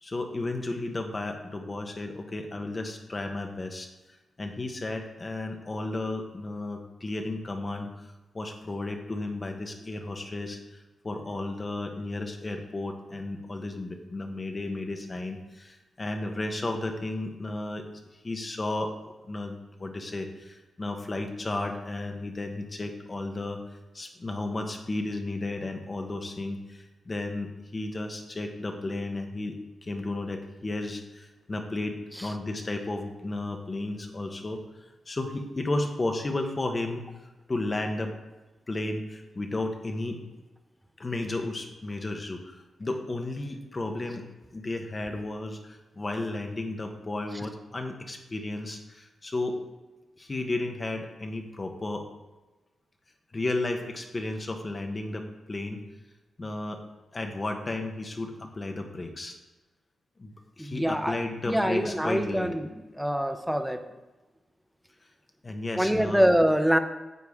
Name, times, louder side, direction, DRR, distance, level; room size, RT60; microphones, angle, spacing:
voice 1, 0.0-3.9 4.4-7.9 8.3-10.8 11.0-17.9 18.2-18.9 19.3-23.6 23.9-29.6 29.8-32.0 32.2-34.6 35.1-37.1 37.5-38.1 38.7-40.2 41.0-42.5 42.8-44.2 44.5-49.6 50.2-52.0 53.3-55.8 56.4-56.8 57.1-59.4 60.2-62.5 65.4-66.2, left 2 dB, 25° left, 4 dB, 0.9 m, -33 dB
voice 2, 60.6-61.2 61.5-62.6 63.0-63.8 65.8-66.8, equal, ahead, 6 dB, 0.6 m, -24 dB
9.5 x 8.2 x 3.6 m, 1.1 s
wide cardioid pair, 160°, 0 cm